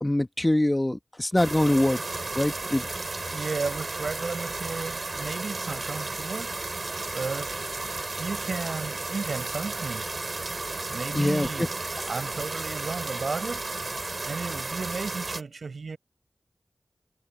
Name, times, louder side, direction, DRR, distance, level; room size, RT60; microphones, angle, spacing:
voice 1, 0.0-2.0 2.3-2.9 11.1-11.7, left 1 dB, 20° left, 1.4 m, -24 dB
sound 1, 1.4-15.4, right 3 dB, 50° right, 6.5 m, -33 dB
voice 2, 3.3-6.6 7.1-7.7 8.2-10.0 10.9-11.7 12.1-13.7 14.2-16.0, right 4 dB, 75° right, 5.4 m, -34 dB
cardioid pair, 50°, 0 cm